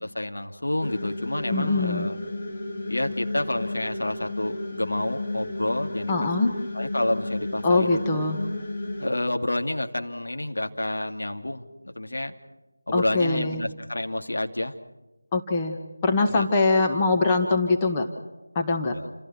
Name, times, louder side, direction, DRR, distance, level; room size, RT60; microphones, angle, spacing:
voice 1, 0.0-2.2 2.9-6.1 6.4-8.2 9.0-12.3 12.9-14.7 16.3-16.5 18.9-19.1, left 1 dB, 70° left, 5 dB, 2.5 m, -29 dB
sound 1, 0.8-9.1, left 2 dB, 35° left, 2.7 m, -32 dB
voice 2, 1.5-2.1 6.1-6.5 7.6-8.4 12.9-13.6 15.3-18.1 18.6-18.9, left 3 dB, 15° left, 2 dB, 1.7 m, -23 dB
29.0 x 27.5 x 4.5 m, 1.1 s
figure-of-eight pair, 165°, 0 cm